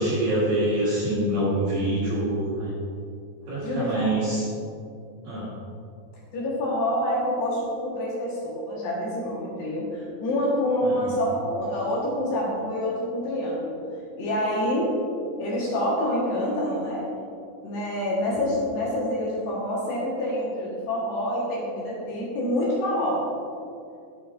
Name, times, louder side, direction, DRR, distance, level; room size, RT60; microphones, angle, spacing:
voice 1, 0.0-2.7 3.5-4.5 5.2-5.5 10.8-11.1, right 1 dB, 65° right, -8 dB, 2.5 m, -25 dB
voice 2, 3.6-4.2 6.3-13.8 14.2-14.9 15.4-17.1 17.6-23.2, left 1 dB, 65° left, -6 dB, 3.1 m, -27 dB
12.0 x 8.0 x 2.5 m, 2.6 s
omnidirectional pair, 5.9 m